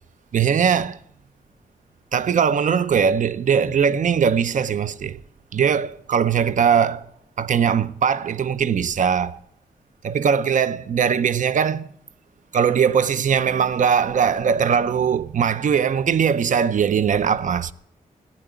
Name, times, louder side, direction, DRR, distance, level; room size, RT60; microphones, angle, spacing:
voice 1, 0.3-1.0 2.1-5.2 5.5-7.1 7.4-9.4 10.0-11.9 12.5-17.7, right 7 dB, 60° right, 0.6 m, -20 dB
15.5 x 9.0 x 8.1 m
wide cardioid pair, 105°, 15 cm